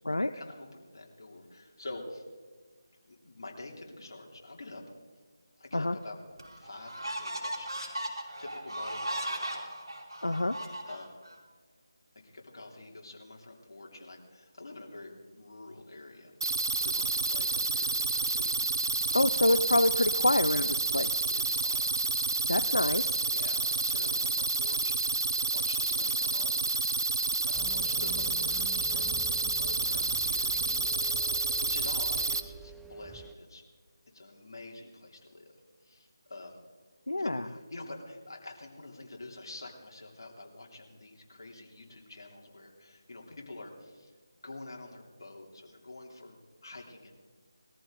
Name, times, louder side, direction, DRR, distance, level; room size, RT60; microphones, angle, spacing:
voice 1, 0.3-2.2 3.0-4.8 5.6-6.2 6.6-7.9 8.4-9.6 10.1-10.2 10.9-11.1 12.2-16.3 16.8-19.1 21.2-21.9 23.3-26.5 26.8-27.1 27.4-29.1 29.4-31.2 31.6-33.6 34.1-35.6 35.8-36.6 37.2-44.1 44.4-47.2, left 2 dB, 60° left, 0 dB, 3.1 m, -47 dB
sound 1, 5.7-5.8 6.4-11.4, right 1 dB, 90° right, 4.3 m, -37 dB
voice 2, 10.2-10.6 19.1-21.2 22.4-23.1 37.1-37.4, left 1 dB, 80° left, 10 dB, 0.7 m, -26 dB
sound 2, 16.4-32.4, right 3 dB, 60° right, 0.9 m, -29 dB
sound 3, 27.5-33.3, right 1 dB, ahead, 0.4 m, -48 dB
21.0 x 14.0 x 3.9 m, 1.5 s
figure-of-eight pair, 160°, 2 cm